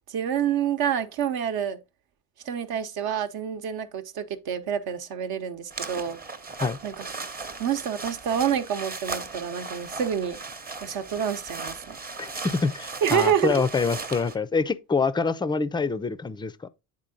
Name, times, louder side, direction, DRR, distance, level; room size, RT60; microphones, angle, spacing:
voice 1, 0.1-1.8 2.4-6.2 6.8-7.0 7.6-10.4 10.8-12.0 13.0-13.6, right 8 dB, 55° right, 1.0 m, -27 dB
sound 1, 5.7-14.4, right 4 dB, 20° right, 0.9 m, -37 dB
voice 2, 12.2-16.7, left 4 dB, 10° left, 0.4 m, -26 dB
9.0 x 3.8 x 3.8 m
supercardioid pair, 85°, 44 cm